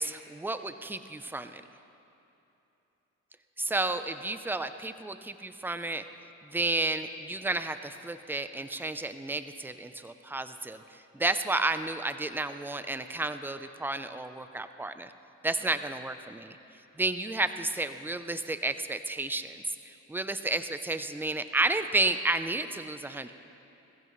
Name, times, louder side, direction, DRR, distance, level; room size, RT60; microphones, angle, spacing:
voice 1, 0.0-1.6 3.6-6.0 6.4-15.1 15.4-16.6 17.0-23.3, right 2 dB, 5° right, 10 dB, 0.6 m, -32 dB
20.5 x 15.0 x 3.2 m, 2.9 s
cardioid pair, 90°, 30 cm